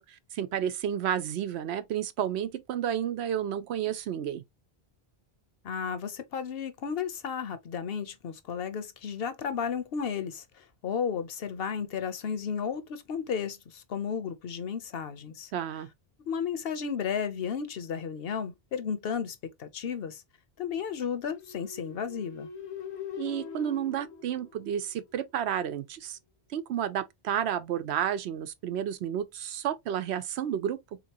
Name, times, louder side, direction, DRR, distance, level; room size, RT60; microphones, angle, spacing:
voice 1, 0.0-4.4 15.5-15.9 23.2-26.2 26.5-31.0, right 9 dB, 85° right, 0.9 m, -31 dB
voice 2, 5.6-15.5 16.2-20.2 20.6-22.5, left 7 dB, 70° left, 0.9 m, -33 dB
sound 1, 21.3-25.2, left 6 dB, 85° left, 1.1 m, -42 dB
3.8 x 2.9 x 2.8 m
omnidirectional pair, 1.1 m